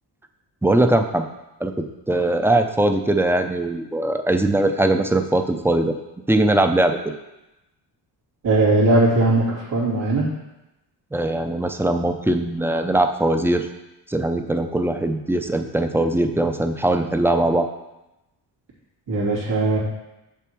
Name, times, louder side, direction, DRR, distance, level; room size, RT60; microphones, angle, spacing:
voice 1, 0.6-1.3 1.6-6.0 6.3-7.0 11.1-13.7 14.1-17.7, right 1 dB, 5° right, 6 dB, 0.6 m, -20 dB
voice 2, 8.4-10.3 19.1-19.8, right 2 dB, 90° right, -8 dB, 3.1 m, -19 dB
7.1 x 7.0 x 4.6 m, 0.96 s
cardioid pair, 105°, 43 cm